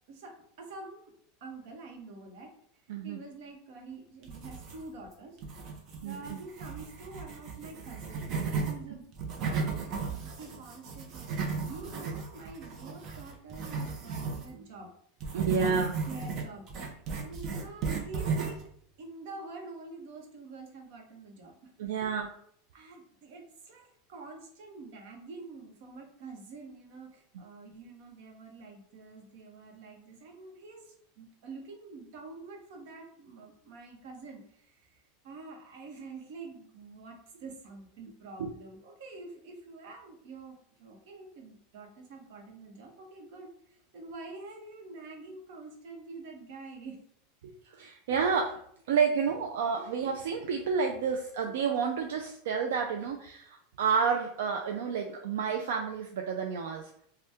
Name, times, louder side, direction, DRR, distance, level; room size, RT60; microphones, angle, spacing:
voice 1, 0.1-1.1 1.4-2.5 3.0-5.4 6.0-8.3 8.6-9.1 9.4-9.8 10.0-11.3 11.6-14.9 15.6-15.8 16.1-18.6 19.0-22.0 22.7-47.0, right 3 dB, 65° right, 1 dB, 0.9 m, -47 dB
sound 1, 4.2-5.0 5.4-8.7 9.1-14.5 15.2-18.7, right 5 dB, 40° right, 0.6 m, -35 dB
voice 2, 6.0-6.4 15.3-15.9 21.8-22.3 38.4-38.5 47.6-48.6 48.9-56.9, right 6 dB, 85° right, 3 dB, 0.3 m, -30 dB
2.7 x 2.2 x 3.4 m, 0.66 s
supercardioid pair, 150°, 0 cm